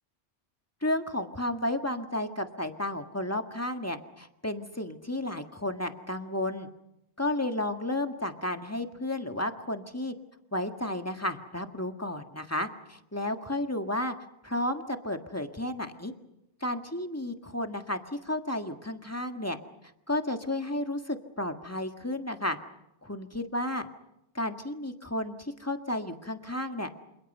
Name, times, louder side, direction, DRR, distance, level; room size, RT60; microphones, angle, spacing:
voice 1, 0.8-6.7 7.2-10.1 10.5-14.2 14.4-16.1 16.6-19.6 20.1-22.6 23.0-23.9 24.4-26.9, left 1 dB, 15° left, 6 dB, 1.7 m, -32 dB
28.0 x 27.5 x 5.5 m, 0.85 s
omnidirectional pair, 1.2 m